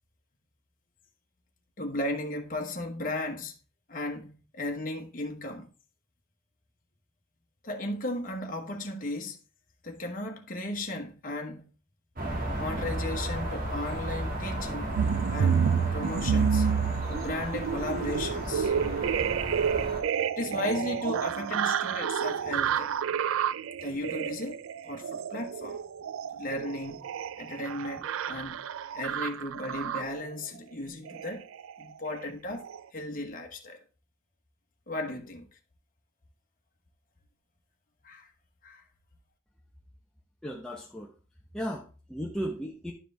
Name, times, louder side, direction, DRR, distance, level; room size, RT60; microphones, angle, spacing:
voice 1, 1.8-3.5 3.9-5.7 7.6-9.4 9.8-11.6 12.5-14.9 15.3-15.6 15.9-16.7 17.1-18.7 20.4-22.9 23.8-25.8 26.3-27.1 27.4-28.6 28.9-31.5 31.8-32.7 32.9-33.8 34.9-35.5 38.0-38.3 38.6-38.8, left 1 dB, 45° left, 1.2 m, -35 dB
sound 1, 12.2-20.0, right 1 dB, 45° right, 1.9 m, -34 dB
sound 2, 15.0-30.3 31.1-31.3 31.6-31.8 32.1-32.3 32.6-32.8, right 7 dB, 90° right, 0.4 m, -30 dB
voice 2, 40.4-41.1 41.5-42.9, equal, 5° left, 0.8 m, -35 dB
11.0 x 4.9 x 3.4 m
head